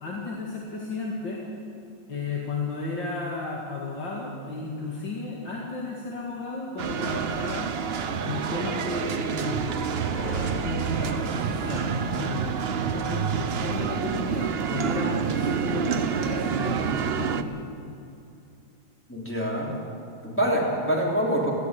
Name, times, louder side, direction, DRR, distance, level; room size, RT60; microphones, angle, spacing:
voice 1, 0.0-1.4 2.1-7.7 8.2-9.9 10.6-12.6 12.8-17.7, left 3 dB, 65° left, -3 dB, 2.8 m, -33 dB
sound 1, 6.8-17.4, right 7 dB, 85° right, 0.5 m, -28 dB
sound 2, 8.0-12.6, left 1 dB, 40° left, 7.9 m, -40 dB
voice 2, 19.1-19.7 20.2-21.5, equal, 5° left, -4 dB, 3.8 m, -25 dB
19.0 x 15.0 x 9.2 m, 2.5 s
omnidirectional pair, 2.2 m